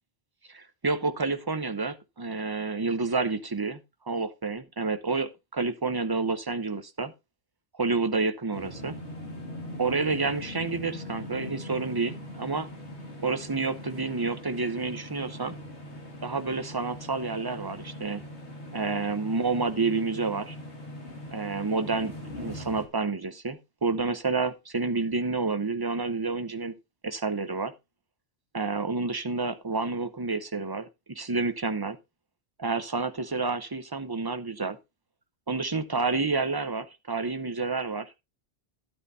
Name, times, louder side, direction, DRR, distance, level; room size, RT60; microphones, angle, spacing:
voice 1, 0.5-3.8 4.1-7.1 7.8-8.9 9.8-12.7 13.2-15.5 16.2-18.2 18.7-20.6 21.3-26.7 27.0-27.7 28.5-32.0 32.6-34.8 35.5-38.2, right 3 dB, 25° right, 0.7 m, -29 dB
sound 1, 8.5-22.9, left 1 dB, 90° left, 2.5 m, -41 dB
12.5 x 8.8 x 2.7 m
omnidirectional pair, 1.1 m